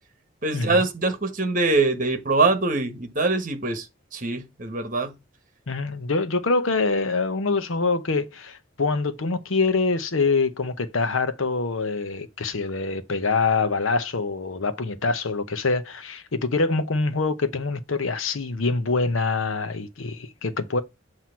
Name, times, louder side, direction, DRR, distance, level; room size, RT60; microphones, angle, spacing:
voice 1, 0.4-3.9 4.1-5.1, right 3 dB, 40° right, 1.3 m, -23 dB
voice 2, 5.7-20.8, left 3 dB, 85° left, 0.8 m, -25 dB
7.7 x 2.9 x 5.7 m
head